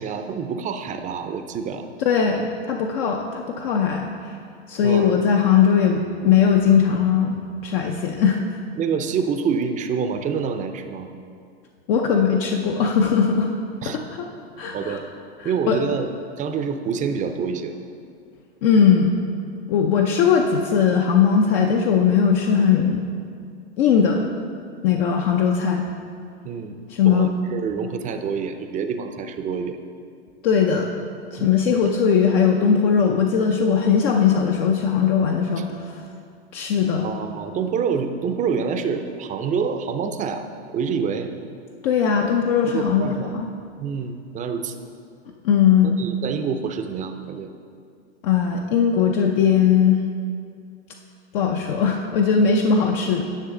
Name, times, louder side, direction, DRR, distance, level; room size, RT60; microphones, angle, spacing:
voice 1, 0.0-1.9 4.8-5.2 8.8-11.1 13.8-14.0 14.7-15.1 15.4-16.1 16.4-17.8 26.4-26.8 27.0-29.8 31.4-31.5 35.6-35.7 37.0-40.5 40.7-41.3 42.6-43.3 43.8-44.8 45.8-47.5, right 6 dB, 25° right, 7 dB, 0.6 m, -27 dB
voice 2, 2.0-4.4 4.7-8.4 11.9-13.5 13.8-14.3 14.6-15.0 15.4-15.8 18.6-19.1 19.7-23.0 23.8-24.3 24.8-25.9 26.9-27.3 30.4-30.9 31.3-36.0 36.5-37.1 41.8-43.1 43.3-43.5 45.4-46.0 48.2-50.0 51.3-53.2, left 7 dB, 55° left, 2 dB, 0.7 m, -19 dB
10.0 x 6.4 x 3.8 m, 2.3 s
hypercardioid pair, 110°, 33 cm